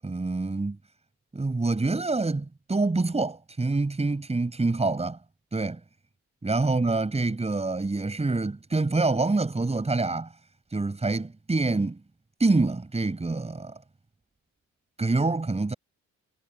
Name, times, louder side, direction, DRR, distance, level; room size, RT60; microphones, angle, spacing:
voice 1, 0.0-0.8 1.3-5.2 5.5-5.8 6.4-10.3 10.7-12.0 12.4-13.8 15.0-15.7, right 3 dB, 20° right, 7.9 m, -26 dB
cardioid pair, 90°, 30 cm